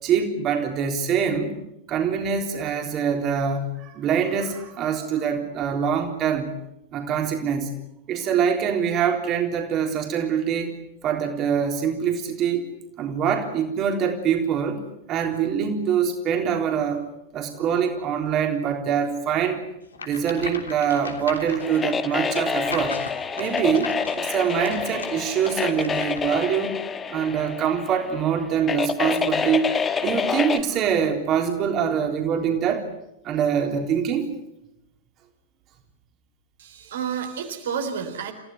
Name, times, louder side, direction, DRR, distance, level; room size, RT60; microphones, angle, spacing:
voice 1, 0.0-1.5 1.9-6.5 6.9-7.7 8.1-10.8 11.0-12.7 13.0-14.8 15.1-17.1 17.3-19.6 20.0-23.0 23.4-26.7 27.1-32.9 33.2-34.3, right 7 dB, 35° right, 3 dB, 3.7 m, -24 dB
sound 1, 19.9-26.4, left 5 dB, 75° left, 3.2 m, -38 dB
sound 2, 21.6-30.6, left 6 dB, 20° left, 1.7 m, -28 dB
voice 2, 36.6-38.3, right 7 dB, 60° right, 5 dB, 3.7 m, -30 dB
30.0 x 16.0 x 9.5 m, 0.87 s
figure-of-eight pair, 90°, 0 cm